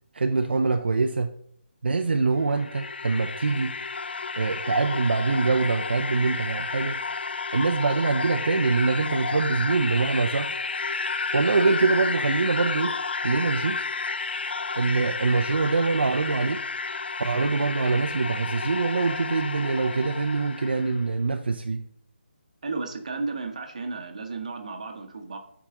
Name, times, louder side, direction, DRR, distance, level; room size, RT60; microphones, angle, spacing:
voice 1, 0.1-1.3 1.8-3.8 4.4-7.0 7.5-10.5 11.3-13.0 13.2-13.9 14.8-16.6 17.2-21.8, right 4 dB, 60° right, 6 dB, 0.6 m, -24 dB
sound 1, 2.3-21.0, left 4 dB, 60° left, 0.4 m, -31 dB
voice 2, 22.6-25.4, right 3 dB, 35° right, 4 dB, 1.2 m, -33 dB
9.0 x 4.8 x 3.8 m, 0.68 s
hypercardioid pair, 180°, 6 cm